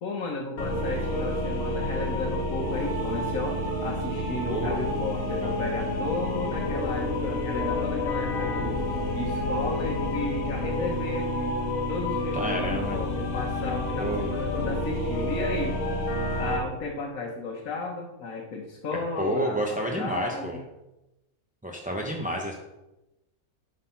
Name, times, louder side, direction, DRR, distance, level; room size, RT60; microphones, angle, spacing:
voice 1, 0.0-8.8 9.1-11.6 11.9-15.8 16.4-20.6, left 3 dB, 75° left, -1 dB, 1.5 m, -34 dB
sound 1, 0.6-16.6, left 1 dB, 50° left, 1.5 m, -29 dB
voice 2, 4.5-5.6 12.3-13.0 14.0-14.4 19.2-20.6 21.6-22.5, right 1 dB, 10° right, 0 dB, 0.5 m, -30 dB
9.8 x 4.1 x 5.7 m, 0.95 s
omnidirectional pair, 1.5 m